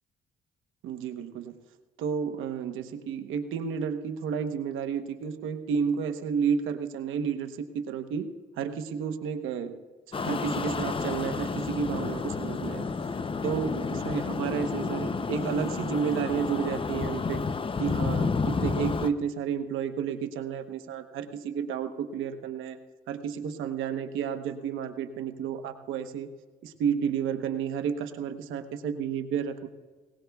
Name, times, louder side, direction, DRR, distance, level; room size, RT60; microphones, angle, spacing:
voice 1, 0.8-1.6 2.0-9.7 10.1-12.8 13.4-17.4 17.8-22.8 23.1-26.3 26.6-29.7, right 7 dB, 90° right, 7 dB, 1.0 m, -31 dB
sound 1, 10.1-19.1, left 4 dB, 25° left, 0.6 m, -30 dB
20.5 x 19.0 x 2.3 m, 1.4 s
cardioid pair, 90°, 20 cm